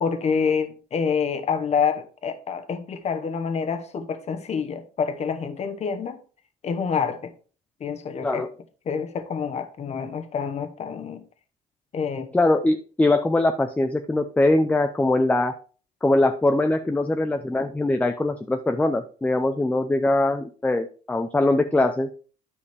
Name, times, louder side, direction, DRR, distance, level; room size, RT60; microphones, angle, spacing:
voice 1, 0.0-6.2 6.6-7.3 7.8-8.4 8.9-11.2 11.9-12.3, left 6 dB, 40° left, 0.9 m, -27 dB
voice 2, 8.2-8.6 12.3-15.5 16.0-22.1, left 2 dB, 10° left, 0.5 m, -22 dB
9.7 x 5.0 x 3.4 m
cardioid pair, 110°, 17 cm